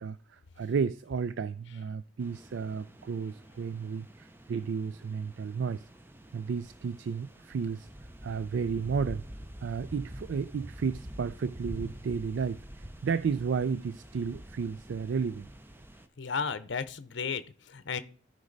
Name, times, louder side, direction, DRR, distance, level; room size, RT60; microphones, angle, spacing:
voice 1, 0.0-5.8 6.3-7.9 8.2-9.2 9.6-15.5, right 5 dB, 65° right, 0.3 m, -33 dB
sound 1, 2.2-16.1, right 1 dB, 10° right, 0.5 m, -47 dB
voice 2, 16.2-18.0, left 5 dB, 60° left, 0.7 m, -34 dB
13.0 x 5.3 x 3.9 m
head